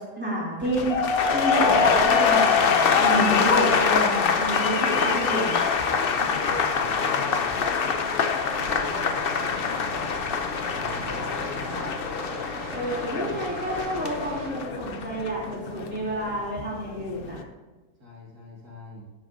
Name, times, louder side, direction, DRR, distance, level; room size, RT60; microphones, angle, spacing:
voice 1, 0.2-0.9 1.3-5.6 12.7-17.4, right 1 dB, 5° right, -6 dB, 3.0 m, -29 dB
sound 1, 0.6-16.7 17.0-17.4, left 5 dB, 55° left, 0.6 m, -24 dB
voice 2, 5.9-8.3 8.7-10.4 10.7-12.0 18.0-19.0, left 1 dB, 65° right, -5 dB, 2.6 m, -41 dB
sound 2, 8.4-14.5, right 1 dB, 50° right, 3.1 m, -38 dB
12.5 x 8.5 x 2.7 m, 1.2 s
omnidirectional pair, 1.7 m